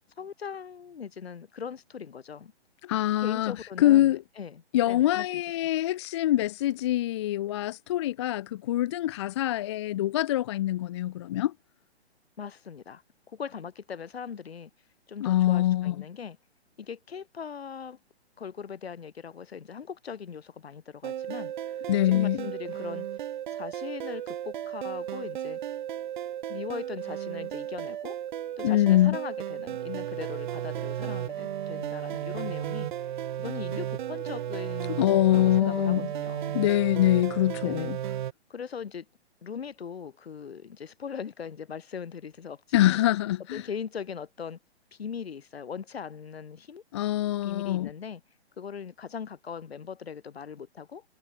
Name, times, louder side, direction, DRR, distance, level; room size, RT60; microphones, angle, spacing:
voice 1, 0.2-2.5 3.2-5.4 12.4-13.0 13.3-14.7 15.1-16.4 16.8-18.0 18.4-23.1 23.5-25.6 26.5-28.2 28.6-32.9 33.4-36.5 37.6-37.9 38.5-39.1 39.4-43.0 43.5-44.6 44.9-46.8 47.4-48.2 48.6-51.0, left 7 dB, 65° left, 5.4 m, -40 dB
voice 2, 2.8-4.2 4.7-11.5 15.2-16.0 21.9-22.5 28.6-29.2 35.0-36.1 36.5-38.0 42.7-43.7 46.9-47.9, left 14 dB, 25° left, 0.5 m, -24 dB
sound 1, 21.0-38.3, right 11 dB, 45° right, 0.6 m, -34 dB
figure-of-eight pair, 130°, 33 cm